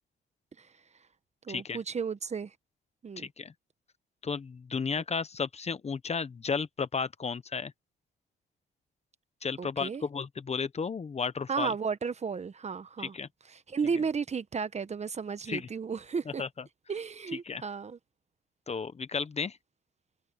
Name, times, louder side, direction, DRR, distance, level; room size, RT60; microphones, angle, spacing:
voice 1, 1.4-2.5 3.0-3.3 9.6-10.0 11.5-13.1 13.5-16.4 16.9-18.0, right 5 dB, 35° right, 1.1 m, -33 dB
voice 2, 3.2-3.5 4.2-7.7 9.4-11.7 13.0-13.3 15.5-15.7 16.4-16.5 17.5-17.6 18.7-19.6, left 5 dB, 35° left, 1.0 m, -33 dB
cardioid pair, 90°, 20 cm